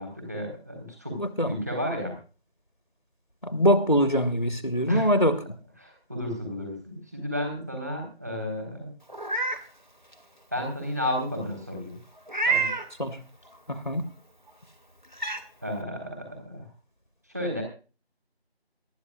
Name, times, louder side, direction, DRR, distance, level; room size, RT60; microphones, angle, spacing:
voice 1, 0.0-2.1 4.9-5.2 5.8-8.9 10.5-12.0 12.5-12.7 15.6-16.6 17.3-17.6, equal, 15° right, 4.1 m, -32 dB
voice 2, 1.2-1.5 3.4-5.4 13.0-13.2 13.7-14.0, equal, 40° left, 1.4 m, -23 dB
Meow, 9.1-9.6 10.1-10.2 12.3-12.9 14.5-14.6 15.1-15.4, right 3 dB, 45° right, 2.4 m, -27 dB
23.0 x 12.5 x 2.4 m
figure-of-eight pair, 180°, 32 cm